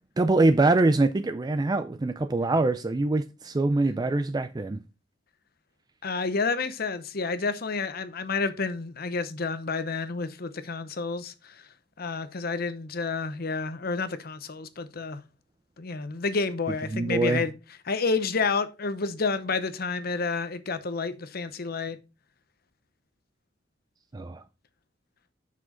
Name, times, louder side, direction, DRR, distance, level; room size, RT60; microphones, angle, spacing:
voice 1, 0.2-4.8 16.9-17.4 24.1-24.4, right 2 dB, 20° right, 0.4 m, -24 dB
voice 2, 6.0-11.6 12.0-15.2 15.8-17.5 17.9-22.0, left 4 dB, 55° left, 0.8 m, -30 dB
7.4 x 6.1 x 3.8 m
head